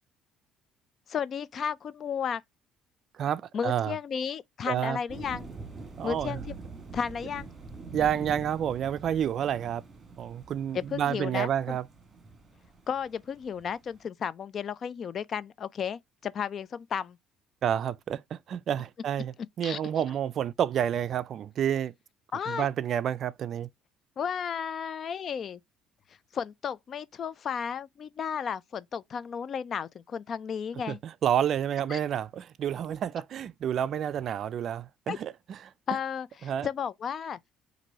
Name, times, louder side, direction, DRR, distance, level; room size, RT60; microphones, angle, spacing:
voice 1, 1.1-2.4 3.5-5.5 6.0-6.6 6.9-7.5 10.7-11.8 12.9-17.2 19.6-19.8 22.3-22.7 24.2-25.6 26.3-31.0 31.9-32.0 35.1-35.2 35.9-37.4, left 7 dB, 40° left, 0.3 m, -33 dB
voice 2, 3.2-4.0 4.7-5.0 6.0-6.4 7.9-9.8 10.2-11.8 17.6-21.9 22.5-23.7 30.9-35.6 36.4-36.7, right 9 dB, 50° right, 0.3 m, -29 dB
sound 1, 5.1-14.0, right 4 dB, 25° right, 1.5 m, -45 dB
6.0 x 2.6 x 2.7 m
cardioid pair, 135°, 0 cm